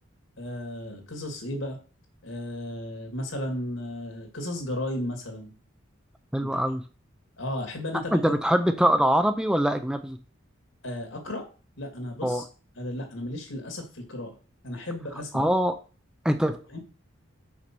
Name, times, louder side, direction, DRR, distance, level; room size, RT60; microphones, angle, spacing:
voice 1, 0.4-1.8 2.2-5.5 6.4-6.5 7.4-8.3 10.8-11.5 11.8-12.4 12.8-14.4 14.6-15.5 16.7-16.8, left 1 dB, 75° left, 4 dB, 2.5 m, -34 dB
voice 2, 6.3-6.8 8.1-10.2 12.2-12.4 15.3-15.7 16.2-16.6, equal, 5° right, 8 dB, 0.5 m, -23 dB
6.1 x 5.6 x 6.0 m, 0.36 s
head